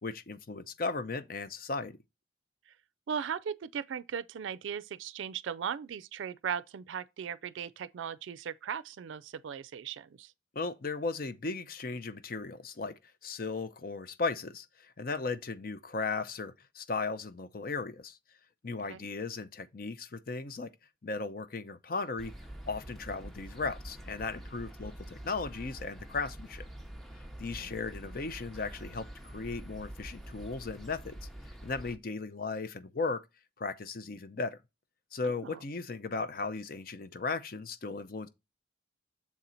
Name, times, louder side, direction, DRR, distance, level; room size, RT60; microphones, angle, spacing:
voice 1, 0.0-2.0 10.5-12.9 13.2-18.2 18.6-20.7 21.0-22.3 22.7-26.6 27.4-31.2 31.6-33.2 33.6-34.6 35.1-38.3, left 4 dB, 50° left, 0.6 m, -36 dB
voice 2, 3.1-10.3 18.9-19.1 27.6-27.8 35.4-35.6, right 7 dB, 85° right, 0.4 m, -38 dB
sound 1, 22.2-32.0, right 1 dB, ahead, 0.7 m, -46 dB
7.3 x 4.3 x 3.9 m
head